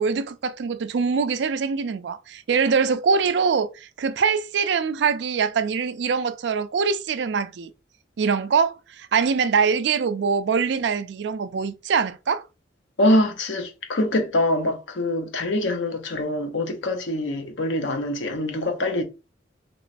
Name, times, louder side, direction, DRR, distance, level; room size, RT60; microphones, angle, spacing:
voice 1, 0.0-7.7 8.2-12.4, right 5 dB, 70° right, 0.4 m, -23 dB
voice 2, 13.0-19.0, left 1 dB, 80° left, 0.7 m, -24 dB
3.0 x 3.0 x 2.5 m
head